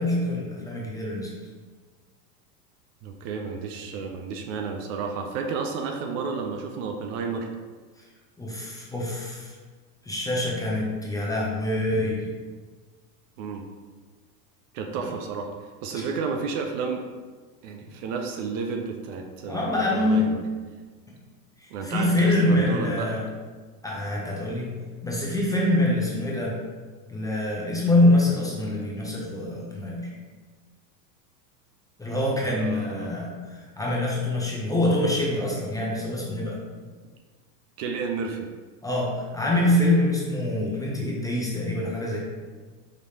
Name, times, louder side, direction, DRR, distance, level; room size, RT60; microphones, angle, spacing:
voice 1, 0.0-1.3 8.4-9.5 10.0-12.2 19.4-20.3 21.6-23.3 23.8-24.7 25.0-26.6 27.1-30.1 32.0-36.6 38.8-42.2, left 1 dB, 5° left, -4 dB, 0.6 m, -25 dB
voice 2, 3.0-7.5 13.4-13.6 14.7-15.5 15.8-17.0 17.6-20.4 21.7-23.1 32.4-33.1 37.8-38.5, right 5 dB, 50° right, 4 dB, 0.6 m, -31 dB
5.1 x 3.1 x 2.8 m, 1.4 s
hypercardioid pair, 115°, 48 cm